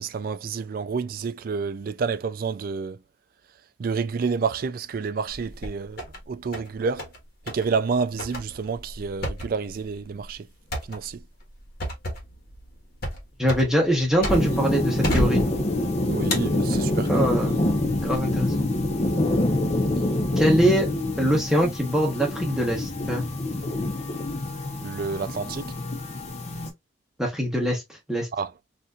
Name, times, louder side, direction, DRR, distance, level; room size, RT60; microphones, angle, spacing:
voice 1, 0.0-3.0 3.8-7.1 7.5-10.5 10.9-11.2 16.1-17.3 24.8-25.7 28.4-28.5, right 5 dB, 45° right, 0.3 m, -29 dB
sound 1, 5.3-6.2 6.5-7.2 7.5-7.7 8.2-14.7 15.0-15.9 16.3-17.2 17.8-18.2, equal, 50° left, 1.3 m, -31 dB
voice 2, 13.4-15.4 17.1-17.6 18.0-18.7 20.4-20.9 21.2-23.3 27.2-27.8 28.1-28.3, equal, 5° right, 1.0 m, -23 dB
sound 2, 14.3-26.7, left 1 dB, 35° left, 0.8 m, -26 dB
4.2 x 2.6 x 2.3 m
head